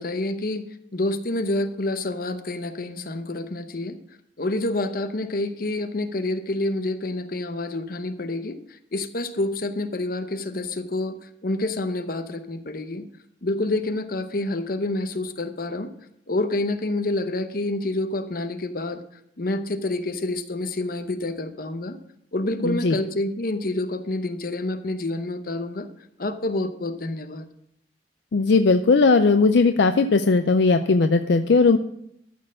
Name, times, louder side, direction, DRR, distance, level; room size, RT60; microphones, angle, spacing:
voice 1, 0.0-4.0 4.4-13.0 13.4-15.9 16.3-19.0 19.4-22.0 22.3-25.9 26.2-27.4, left 2 dB, 50° left, 8 dB, 0.8 m, -28 dB
voice 2, 22.6-23.0 28.3-31.8, left 4 dB, 70° left, 8 dB, 0.5 m, -18 dB
13.0 x 4.4 x 7.3 m, 0.74 s
head